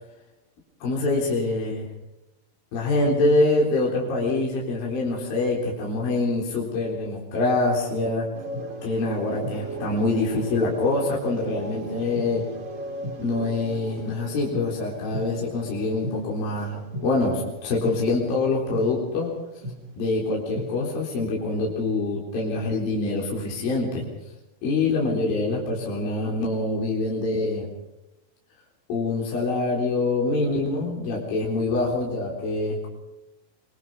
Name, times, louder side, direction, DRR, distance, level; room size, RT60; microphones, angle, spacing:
voice 1, 0.8-1.9 2.7-8.3 8.8-12.4 13.2-19.3 20.0-24.0 24.6-27.7 28.9-32.9, left 2 dB, 55° left, -2 dB, 5.4 m, -25 dB
sound 1, 8.3-19.1 19.6-19.8 20.2-20.7, right 1 dB, 45° right, 3.8 m, -37 dB
25.0 x 24.0 x 4.9 m, 0.91 s
omnidirectional pair, 5.2 m